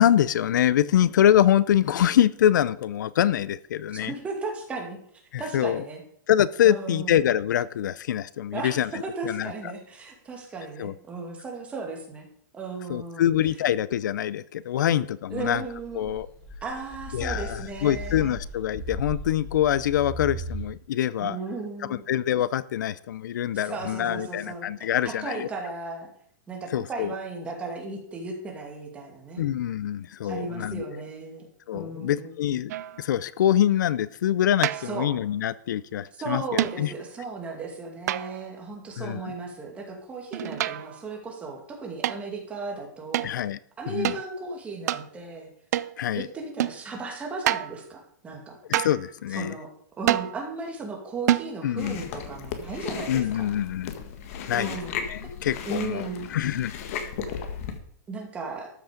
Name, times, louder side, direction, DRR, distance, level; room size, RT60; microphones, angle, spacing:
voice 1, 0.0-4.1 5.3-5.9 6.3-8.9 9.2-9.5 10.8-10.9 12.9-15.6 15.9-16.3 17.1-21.4 21.9-25.5 26.7-27.1 29.4-31.0 31.7-32.7 33.0-36.9 39.0-39.2 43.2-43.6 43.9-44.2 46.0-46.3 48.7-49.6 51.6-52.0 53.1-54.0 54.5-54.8 55.1-57.2, left 11 dB, 75° left, 19 dB, 0.5 m, -25 dB
voice 2, 4.0-6.0 6.6-7.2 8.5-12.3 12.5-13.3 15.3-16.1 16.6-18.4 21.2-22.0 23.5-24.7 25.0-26.1 26.5-29.4 30.2-31.5 31.7-32.3 34.8-35.1 36.1-43.3 43.8-45.5 46.2-48.6 49.4-49.7 50.0-53.5 54.5-55.3 55.6-56.3 58.1-58.7, right 3 dB, 10° right, 1 dB, 2.3 m, -36 dB
sound 1, 15.3-20.6, equal, 5° left, 3.3 m, -37 dB
sound 2, 32.7-33.1 34.6-35.1 36.6-36.9 38.1-38.6 40.3-41.0 42.0-42.2 43.1-43.4 44.0-44.2 44.9-45.1 45.7-46.0 46.6-46.8 47.5-47.8 48.7-49.1 50.1-50.4 51.3-51.6, right 13 dB, 60° right, 0.5 m, -27 dB
Chewing mastication, 51.8-57.8, left 7 dB, 50° left, 1.7 m, -36 dB
13.0 x 8.3 x 5.1 m, 0.65 s
supercardioid pair, 165°, 10 cm